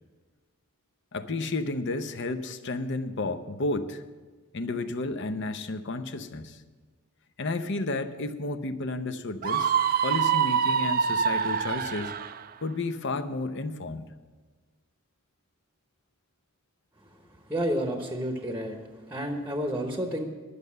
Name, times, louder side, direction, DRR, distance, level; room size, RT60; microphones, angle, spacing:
voice 1, 1.1-4.0 4.5-6.6 7.4-9.7 10.0-12.1 12.6-14.1, left 2 dB, 55° left, 10 dB, 0.7 m, -32 dB
Screaming, 9.4-12.4, right 7 dB, 45° right, 0.4 m, -25 dB
voice 2, 17.5-18.8 19.1-20.3, equal, 10° right, 3 dB, 1.0 m, -30 dB
11.5 x 6.7 x 8.5 m, 1.4 s
head